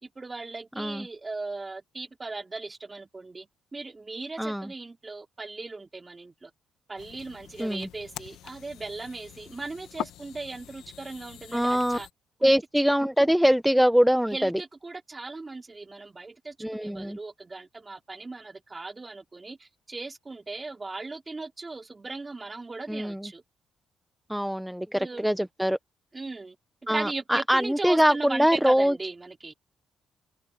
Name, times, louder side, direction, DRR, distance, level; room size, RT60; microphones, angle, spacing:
voice 1, 0.0-6.5 6.9-12.1 12.4-12.5 14.3-23.4 24.9-25.3 26.1-26.6 26.8-29.5, right 3 dB, 25° right, 2.8 m, -38 dB
voice 2, 0.8-1.1 4.4-4.7 7.6-7.9 11.5-12.0 12.4-14.5 16.6-17.2 22.9-23.3 24.3-25.8 26.9-28.9, equal, ahead, 0.9 m, -23 dB
sound 1, 7.0-12.1, left 12 dB, 85° left, 1.2 m, -43 dB
cardioid pair, 95°, 0 cm